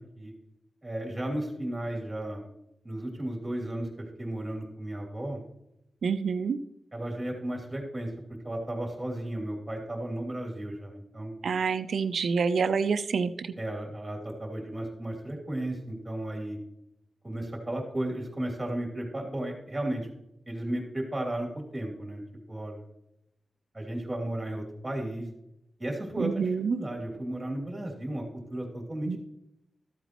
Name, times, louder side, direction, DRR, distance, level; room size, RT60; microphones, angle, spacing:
voice 1, 0.8-2.5 2.8-5.4 6.9-8.1 8.4-11.4 13.6-16.6 17.2-20.1 20.5-22.2 22.5-22.8 23.7-25.3 25.8-29.2, right 1 dB, 15° right, 0 dB, 2.7 m, -34 dB
voice 2, 6.0-6.6 11.4-13.5 26.2-26.8 29.1-29.2, right 5 dB, 75° right, 11 dB, 0.6 m, -27 dB
14.0 x 8.1 x 3.0 m, 0.83 s
wide cardioid pair, 135°, 0 cm